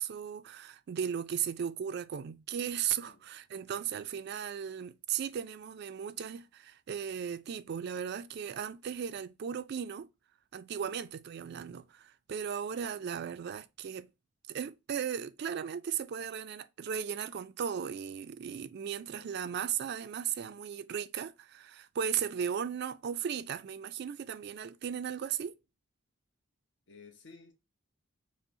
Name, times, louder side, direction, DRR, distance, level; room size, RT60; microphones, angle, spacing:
voice 1, 0.0-10.1 10.5-14.1 14.5-25.5, right 8 dB, 55° right, 0.3 m, -36 dB
voice 2, 26.9-27.5, left 4 dB, 60° left, 0.9 m, -55 dB
5.2 x 2.0 x 2.6 m
head